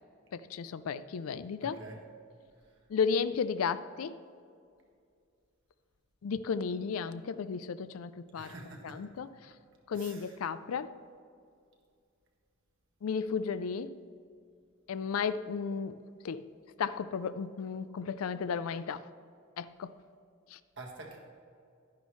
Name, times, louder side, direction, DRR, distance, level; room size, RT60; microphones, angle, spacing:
voice 1, 0.3-1.8 2.9-4.2 6.2-8.5 8.8-9.5 9.9-11.0 13.0-14.0 14.9-16.5 16.8-19.1 19.6-19.9 20.5-20.6, left 6 dB, 85° left, 0.4 m, -34 dB
voice 2, 1.6-2.0 8.3-9.1 9.9-10.4 20.8-21.2, right 2 dB, 60° right, 1.6 m, -46 dB
11.5 x 10.5 x 3.1 m
head